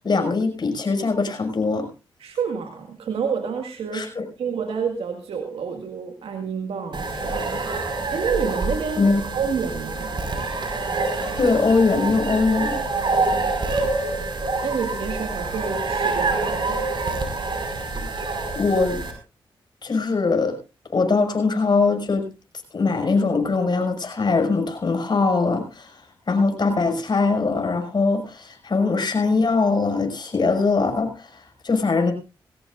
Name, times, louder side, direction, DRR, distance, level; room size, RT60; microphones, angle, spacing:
voice 1, 0.0-1.9 3.9-4.2 9.0-9.2 11.4-12.8 18.1-19.0 19.8-20.6 20.9-22.3 22.7-32.1, left 4 dB, 50° left, 4 dB, 6.0 m, -22 dB
voice 2, 2.2-4.1 4.4-7.6 8.1-10.1 14.6-16.8, right 6 dB, 75° right, 5 dB, 1.9 m, -29 dB
sound 1, 6.9-19.1, right 3 dB, 55° right, 5.4 m, -26 dB
21.0 x 17.0 x 2.6 m, 0.31 s
supercardioid pair, 50°, 10 cm